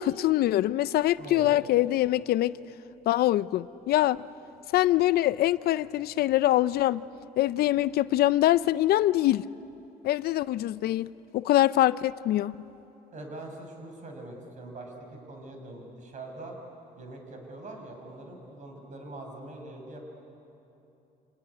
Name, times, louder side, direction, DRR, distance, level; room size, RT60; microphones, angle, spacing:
voice 1, 0.0-2.5 3.1-4.2 4.7-7.1 7.4-9.5 10.0-12.5, left 14 dB, 65° left, 0.5 m, -24 dB
voice 2, 1.2-1.6 13.1-14.9 15.2-16.6 17.0-20.1, right 2 dB, 45° right, 5.7 m, -43 dB
27.0 x 19.0 x 9.9 m
cardioid pair, 110°, 17 cm